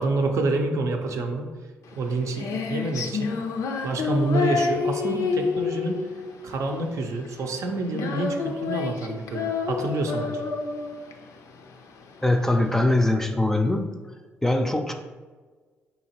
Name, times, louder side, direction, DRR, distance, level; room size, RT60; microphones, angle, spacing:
voice 1, 0.0-1.4 1.9-3.3 3.8-6.0 6.4-10.4, right 2 dB, 60° right, 3 dB, 0.5 m, -27 dB
Female singing, 1.9-12.8, left 5 dB, 65° left, 0.4 m, -29 dB
voice 2, 12.2-13.8 14.4-14.9, left 2 dB, 5° left, 4 dB, 0.4 m, -22 dB
3.8 x 2.8 x 2.9 m, 1.4 s
hypercardioid pair, 45°, 6 cm